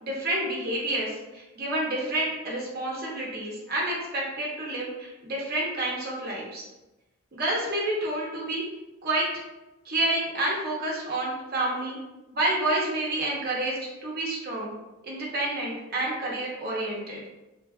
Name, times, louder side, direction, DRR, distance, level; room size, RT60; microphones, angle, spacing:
voice 1, 0.0-6.7 7.3-8.6 9.0-9.2 9.8-12.0 12.3-14.7 15.0-17.2, right 1 dB, 50° right, -3 dB, 0.7 m, -29 dB
2.6 x 2.3 x 2.3 m, 1.0 s
head